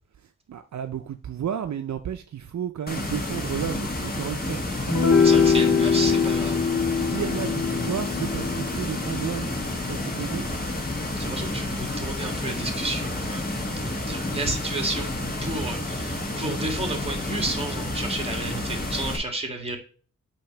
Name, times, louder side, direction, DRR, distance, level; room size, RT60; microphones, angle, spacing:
voice 1, 0.5-4.6 7.0-9.6 9.9-10.5, right 9 dB, 65° right, 0.5 m, -32 dB
sound 1, 2.9-19.2, left 1 dB, 30° left, 1.4 m, -30 dB
sound 2, 4.9-11.4, left 6 dB, 80° left, 1.7 m, -24 dB
voice 2, 5.2-6.7 10.5-10.6 11.2-13.5 13.9-15.1 15.4-19.8, right 2 dB, 20° right, 1.7 m, -31 dB
8.7 x 2.9 x 5.8 m
wide cardioid pair, 120°, 31 cm